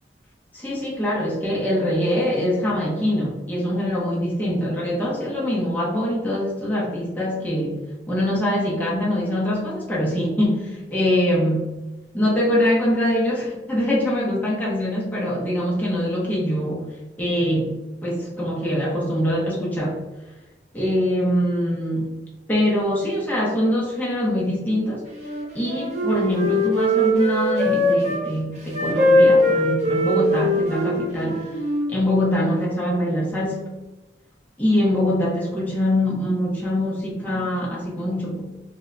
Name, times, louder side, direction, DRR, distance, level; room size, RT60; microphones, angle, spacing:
voice 1, 0.5-11.7 12.1-20.0 20.7-22.1 22.5-25.1 25.5-31.5 31.9-33.7 34.6-38.4, left 1 dB, 10° left, -5 dB, 0.5 m, -23 dB
Wind instrument woodwind instrument, 25.1-28.2 28.7-31.9, left 1 dB, 40° right, 0.5 m, -21 dB
2.1 x 2.0 x 3.6 m, 1.1 s
head